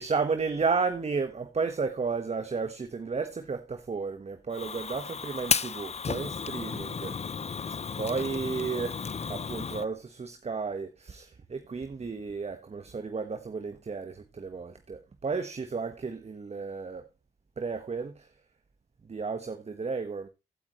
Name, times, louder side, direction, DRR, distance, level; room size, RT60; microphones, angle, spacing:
voice 1, 0.0-7.1 8.0-17.1 17.6-18.3 19.0-20.3, right 4 dB, 35° right, 1.4 m, -33 dB
Fire, 4.5-9.8, left 6 dB, 35° left, 0.8 m, -33 dB
16.0 x 8.7 x 3.1 m
hypercardioid pair, 50°, 18 cm